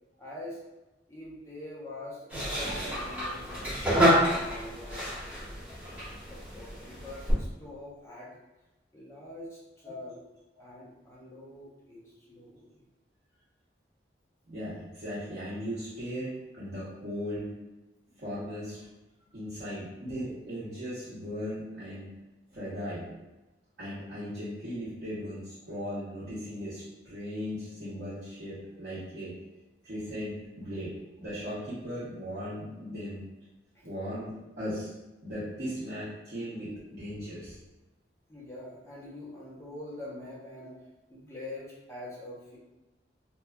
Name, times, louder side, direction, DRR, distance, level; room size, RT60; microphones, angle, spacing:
voice 1, 0.2-0.6 1.1-2.2 2.5-5.0 5.3-5.6 6.3-8.3 8.9-10.2 10.6-12.8 38.3-40.7 41.1-42.6, left 1 dB, 15° left, -6 dB, 0.6 m, -44 dB
sound 1, 2.3-7.3, equal, 10° right, 0.9 m, -29 dB
voice 2, 14.5-17.5 18.1-18.8 19.3-22.1 22.5-23.1 23.8-29.4 29.8-33.2 33.8-34.9 35.2-37.6, equal, 55° right, -11 dB, 0.7 m, -37 dB
2.9 x 2.2 x 2.2 m, 1.0 s
head